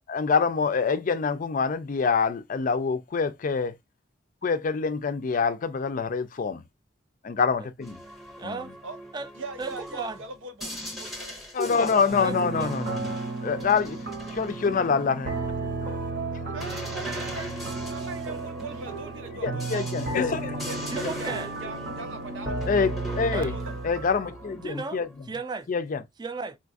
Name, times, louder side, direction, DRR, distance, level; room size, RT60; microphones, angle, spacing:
voice 1, 0.1-3.8 4.4-6.6 7.2-8.0 8.4-8.5 11.5-14.0 14.3-15.3 19.4-20.6 21.0-21.1 22.7-23.5 23.8-25.1 25.7-26.0, left 5 dB, 45° left, 0.4 m, -26 dB
sound 1, 7.8-15.5 16.6-25.4, equal, ahead, 0.8 m, -41 dB
voice 2, 8.4-8.7 9.1-9.3 9.6-10.2 12.2-12.7 20.9-21.5 23.3-23.5 24.5-25.7 26.2-26.6, right 3 dB, 20° right, 0.4 m, -35 dB
voice 3, 9.4-11.4 12.0-12.6 16.5-17.5 17.9-20.0 20.5-22.7 23.3-23.6, right 3 dB, 85° right, 0.8 m, -41 dB
sound 2, 12.1-24.7, right 3 dB, 55° right, 0.9 m, -33 dB
3.8 x 2.4 x 2.5 m
head